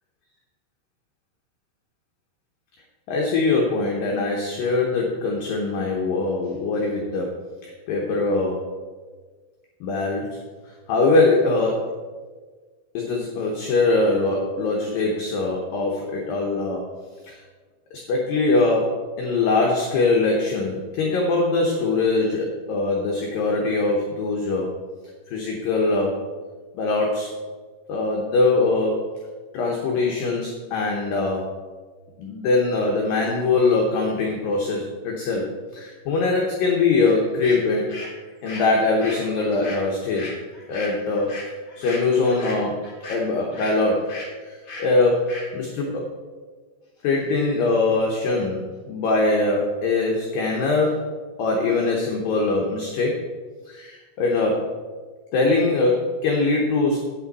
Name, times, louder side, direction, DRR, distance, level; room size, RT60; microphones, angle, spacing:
voice 1, 3.1-7.4 7.9-8.7 9.8-12.0 12.9-16.9 17.2-17.4 17.9-24.7 25.3-26.2 26.7-27.4 27.9-29.2 29.5-31.6 32.2-38.0 38.4-40.3 40.7-41.4 41.8-44.2 44.5-46.1 47.0-51.1 51.4-53.2 53.7-54.8 55.3-57.0, left 3 dB, 85° left, -1 dB, 2.0 m, -22 dB
sound 1, 37.0-37.1 37.4-43.8 44.1-44.3 44.7-44.9 45.3-45.5, left 2 dB, 55° left, 1.2 m, -38 dB
8.6 x 8.6 x 4.0 m, 1.4 s
omnidirectional pair, 5.5 m